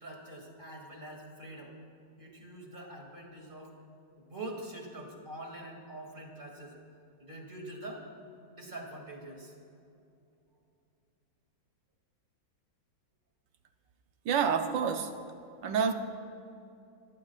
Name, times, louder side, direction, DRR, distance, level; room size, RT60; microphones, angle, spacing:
voice 1, 0.0-1.7 2.2-3.7 4.3-6.7 7.2-8.0 8.5-9.5, right 1 dB, 25° right, 0 dB, 2.6 m, -44 dB
voice 2, 14.2-15.2 15.6-15.9, right 6 dB, 70° right, 6 dB, 1.6 m, -28 dB
28.0 x 17.5 x 2.5 m, 2.6 s
omnidirectional pair, 2.1 m